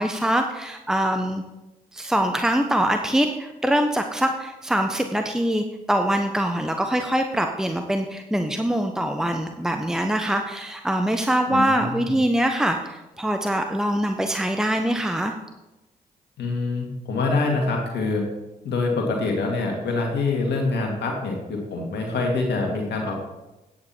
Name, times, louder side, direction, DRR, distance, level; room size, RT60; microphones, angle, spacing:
voice 1, 0.0-1.4 1.9-15.3, right 1 dB, 5° right, 5 dB, 1.0 m, -23 dB
voice 2, 11.5-12.2 16.4-18.3 18.6-23.1, left 3 dB, 70° left, 1 dB, 2.2 m, -25 dB
9.4 x 8.4 x 4.4 m, 1.0 s
hypercardioid pair, 40°, 18 cm